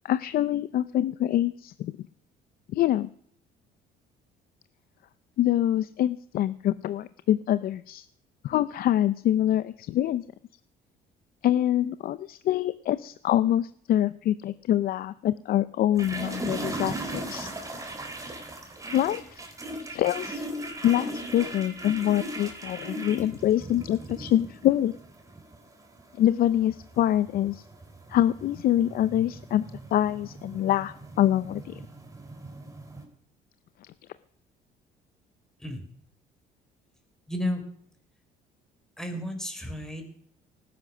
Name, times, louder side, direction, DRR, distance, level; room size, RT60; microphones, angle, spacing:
voice 1, 0.0-1.9 2.7-3.1 5.4-8.1 8.4-10.2 11.4-17.5 18.9-19.4 19.9-20.4 20.8-24.9 26.2-27.6 28.1-29.6 29.9-31.8, left 12 dB, 60° left, 15 dB, 0.6 m, -25 dB
sound 1, 16.0-33.0, right 1 dB, 20° right, 3.6 m, -38 dB
voice 2, 37.3-37.6 39.0-40.0, left 1 dB, 5° left, 5 dB, 4.3 m, -32 dB
18.5 x 10.5 x 6.2 m, 0.63 s
cardioid pair, 110°, 17 cm